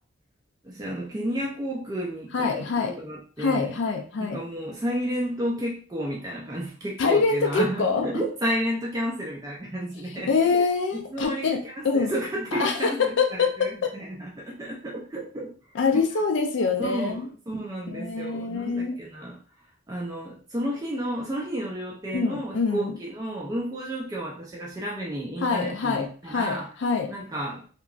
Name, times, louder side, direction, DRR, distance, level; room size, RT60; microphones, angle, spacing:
voice 1, 0.6-3.7 4.2-10.3 10.9-15.5 15.9-16.0 16.8-17.2 17.5-19.4 19.9-26.7 27.1-27.7, equal, 20° right, -3 dB, 0.4 m, -32 dB
voice 2, 2.3-3.0 3.4-4.4 7.0-8.1 10.1-12.1 12.5-13.9 15.7-17.3 17.9-19.0 22.1-22.9 25.4-27.1, left 4 dB, 65° left, 3 dB, 0.4 m, -25 dB
2.9 x 2.3 x 2.4 m, 0.40 s
head